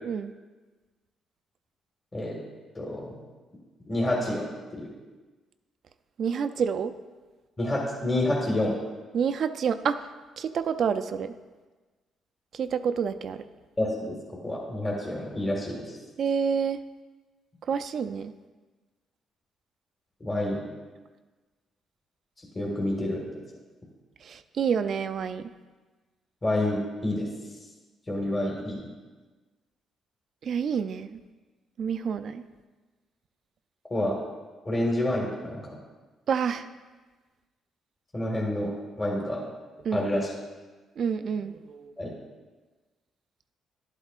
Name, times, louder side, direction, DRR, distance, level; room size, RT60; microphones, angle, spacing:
voice 1, 2.8-3.1 3.9-4.9 7.6-8.8 13.8-14.2 14.4-16.0 20.2-20.6 22.6-23.2 26.4-27.3 28.1-28.8 33.9-34.2 34.7-35.7 38.1-38.7 39.0-39.4 39.9-40.3 42.0-42.1, left 1 dB, 25° left, -2 dB, 1.7 m, -28 dB
voice 2, 6.2-6.9 9.1-10.0 10.4-11.3 12.5-13.4 16.2-16.8 17.7-18.3 24.2-25.5 30.4-31.2 31.8-32.4 36.3-36.7 39.8-40.1 41.0-42.1, right 6 dB, 60° right, 11 dB, 0.4 m, -28 dB
11.5 x 8.0 x 2.4 m, 1.3 s
cardioid pair, 90°, 0 cm